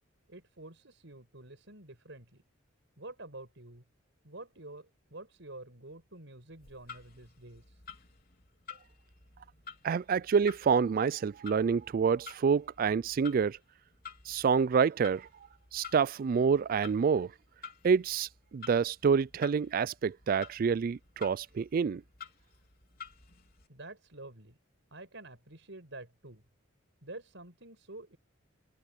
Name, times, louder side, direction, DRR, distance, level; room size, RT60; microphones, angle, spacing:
voice 1, 0.3-2.4 3.0-3.8 4.2-7.8 23.7-24.6 24.9-26.4 27.0-28.2, right 2 dB, 65° right, 6.7 m, -48 dB
Clock, 6.5-23.7, left 6 dB, 50° left, 3.8 m, -52 dB
voice 2, 9.8-13.6 14.3-15.3 15.7-17.3 17.8-22.0, right 6 dB, 45° right, 0.3 m, -27 dB
open air
head